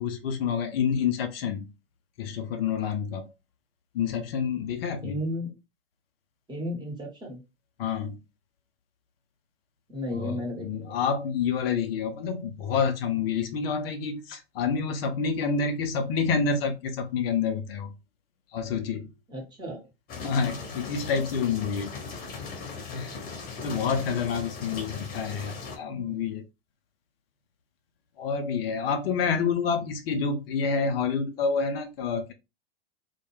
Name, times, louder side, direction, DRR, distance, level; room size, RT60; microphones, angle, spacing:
voice 1, 0.0-1.7 2.2-3.3 3.9-5.2 7.8-8.2 10.1-17.9 18.5-19.1 20.2-22.0 22.9-23.2 23.6-26.4 28.2-32.3, left 6 dB, 60° left, 0.5 m, -28 dB
voice 2, 5.0-5.6 6.5-7.4 9.9-11.0 19.3-19.9 26.0-26.3, left 1 dB, 15° right, 0.9 m, -34 dB
sound 1, 20.1-25.8, left 5 dB, 25° left, 0.9 m, -39 dB
2.2 x 2.1 x 3.0 m
hypercardioid pair, 100°, 34 cm